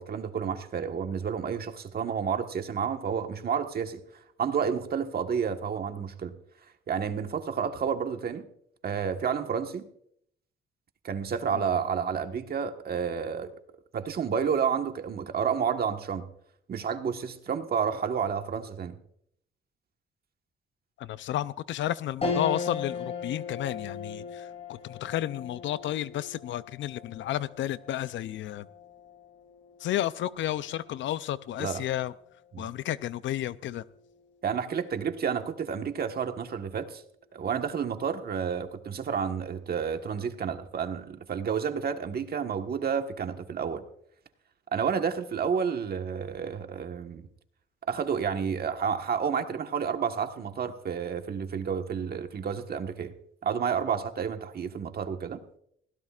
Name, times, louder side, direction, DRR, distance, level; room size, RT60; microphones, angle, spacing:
voice 1, 0.0-4.0 4.4-6.3 6.9-8.5 8.8-9.9 11.0-13.5 13.9-16.3 16.7-19.0 31.6-31.8 32.5-32.7 34.4-37.0 37.3-43.8 44.7-47.3 47.9-53.1 53.4-55.4, right 7 dB, 50° right, 1.4 m, -30 dB
voice 2, 21.0-28.7 29.8-32.1 32.6-33.8, left 13 dB, 70° left, 0.6 m, -32 dB
sound 1, 22.2-31.8 32.3-32.4 33.7-34.2, left 4 dB, 30° left, 5.6 m, -38 dB
20.0 x 17.0 x 2.5 m
cardioid pair, 90°, 20 cm